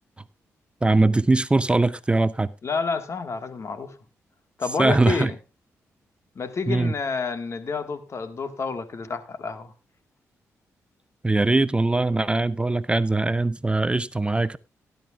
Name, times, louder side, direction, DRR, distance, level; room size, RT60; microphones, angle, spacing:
voice 1, 0.8-2.5 4.8-5.3 6.7-6.9 11.2-14.6, right 2 dB, 20° right, 0.5 m, -21 dB
voice 2, 2.6-4.0 4.6-5.4 6.3-9.7, left 4 dB, 50° left, 1.6 m, -29 dB
17.0 x 11.0 x 2.4 m
cardioid pair, 65°, 6 cm